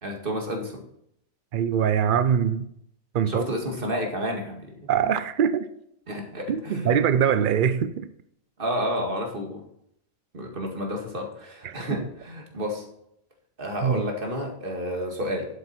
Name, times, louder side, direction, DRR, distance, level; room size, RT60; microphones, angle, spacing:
voice 1, 0.0-0.8 3.2-4.9 6.1-7.0 8.6-9.6 10.3-12.9 13.6-15.6, equal, 35° right, 2.1 m, -30 dB
voice 2, 1.5-2.7 3.1-3.5 4.9-5.7 6.5-8.1 11.6-12.0 13.8-14.1, right 8 dB, 90° right, 0.4 m, -23 dB
11.0 x 8.1 x 4.3 m
omnidirectional pair, 1.6 m